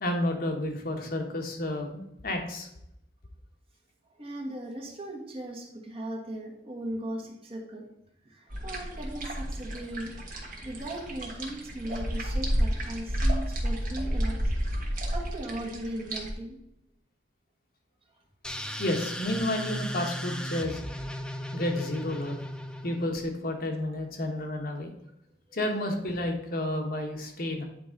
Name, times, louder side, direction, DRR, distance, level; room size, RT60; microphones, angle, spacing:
voice 1, 0.0-2.7 18.8-20.8 21.5-22.4 22.8-24.9 25.5-27.7, left 1 dB, 55° left, 2 dB, 1.3 m, -31 dB
voice 2, 4.2-7.9 8.2-10.2 10.6-14.5 14.8-16.6 18.7-18.8, right 1 dB, 35° right, 0 dB, 1.4 m, -38 dB
sound 1, 8.5-16.3, equal, 50° right, 1.3 m, -31 dB
sound 2, 18.4-23.2, equal, 5° left, 0.5 m, -36 dB
8.9 x 4.7 x 3.9 m, 0.80 s
head